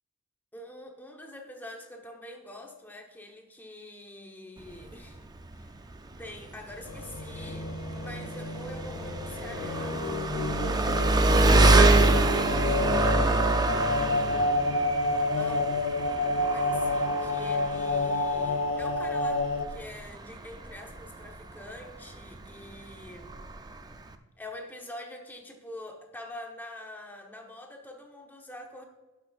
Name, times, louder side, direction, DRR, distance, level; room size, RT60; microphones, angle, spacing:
voice 1, 0.5-5.2 5.5-5.8 6.2-14.1 15.2-23.3 24.4-28.9, left 1 dB, 10° left, 2 dB, 0.9 m, -45 dB
Engine, 4.6-24.2, right 2 dB, 20° right, 0.4 m, -27 dB
sound 1, 6.9-19.6, left 2 dB, 65° left, 0.5 m, -30 dB
12.0 x 6.2 x 2.4 m, 1.1 s
head